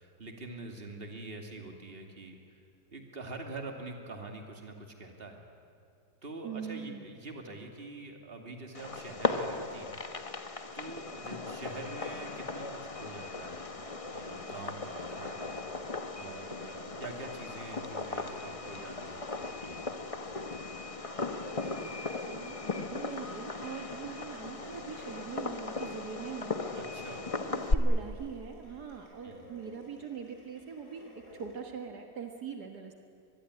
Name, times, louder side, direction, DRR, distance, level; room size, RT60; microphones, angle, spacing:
voice 1, 0.0-2.4 2.9-5.4 6.2-10.0 10.7-13.7 14.1-15.6 16.1-19.8 26.7-27.3 29.2-29.5, right 2 dB, 35° right, 3 dB, 2.8 m, -45 dB
voice 2, 6.4-7.0 21.7-26.6 27.1-32.9, right 6 dB, 70° right, 4 dB, 2.1 m, -42 dB
Fireworks, 8.7-27.7, left 3 dB, 25° left, 0.9 m, -37 dB
sound 1, 12.9-31.5, equal, 45° left, 7.3 m, -54 dB
24.5 x 21.0 x 9.7 m, 2.4 s
omnidirectional pair, 1.8 m